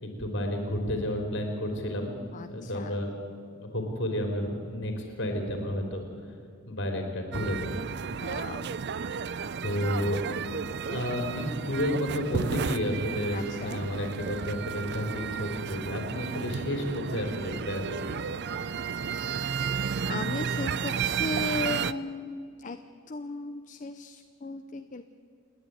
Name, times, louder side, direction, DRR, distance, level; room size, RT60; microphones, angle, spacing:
voice 1, 0.0-2.1 2.5-3.1 3.5-6.1 6.7-7.7 9.6-10.2 10.9-18.3, equal, 55° left, 3 dB, 3.8 m, -31 dB
voice 2, 2.3-3.0 8.2-8.7 9.5-9.7 13.3-13.8 18.9-19.2 19.6-19.7 20.1-22.8 23.1-25.0, left 3 dB, 35° left, 8 dB, 0.6 m, -37 dB
sound 1, 7.3-21.9, right 6 dB, 50° right, 0.5 m, -33 dB
28.5 x 10.5 x 9.6 m, 2.3 s
head